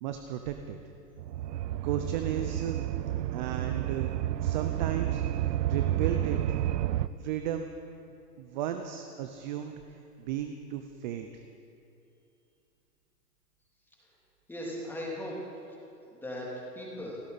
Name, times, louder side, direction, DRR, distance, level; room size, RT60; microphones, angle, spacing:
voice 1, 0.0-0.8 1.8-2.8 3.3-4.1 4.4-6.6 7.2-7.7 8.4-11.4, right 10 dB, 30° right, 7 dB, 0.7 m, -35 dB
sound 1, 1.2-7.1, right 12 dB, 75° right, 0.7 m, -30 dB
voice 2, 14.5-15.8 16.1-16.5 16.7-17.2, equal, 5° left, -4 dB, 3.1 m, -38 dB
29.5 x 11.5 x 4.2 m, 2.6 s
hypercardioid pair, 140°, 50 cm